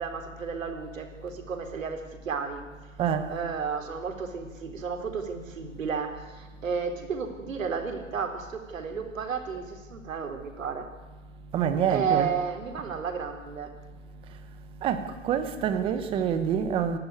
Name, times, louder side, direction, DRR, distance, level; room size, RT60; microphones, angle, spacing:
voice 1, 0.0-2.6 3.3-10.9 11.9-13.7, right 6 dB, 80° right, 5 dB, 4.1 m, -32 dB
voice 2, 11.5-12.3 14.8-17.0, right 8 dB, 15° right, 10 dB, 1.1 m, -26 dB
28.0 x 12.0 x 9.6 m, 1.3 s
hypercardioid pair, 155°, 39 cm